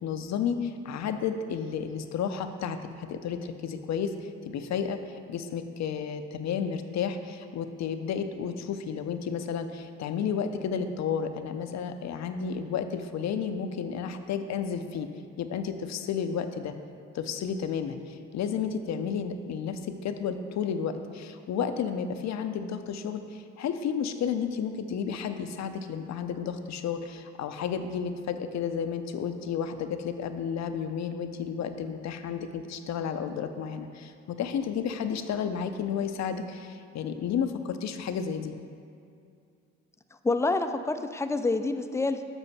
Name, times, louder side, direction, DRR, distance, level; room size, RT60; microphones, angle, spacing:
voice 1, 0.0-15.1 15.4-16.7 17.1-38.5, left 7 dB, 65° left, 8 dB, 0.6 m, -32 dB
voice 2, 40.2-42.2, left 3 dB, 10° left, 8 dB, 0.4 m, -27 dB
7.1 x 6.7 x 4.1 m, 2.4 s
cardioid pair, 90°, 30 cm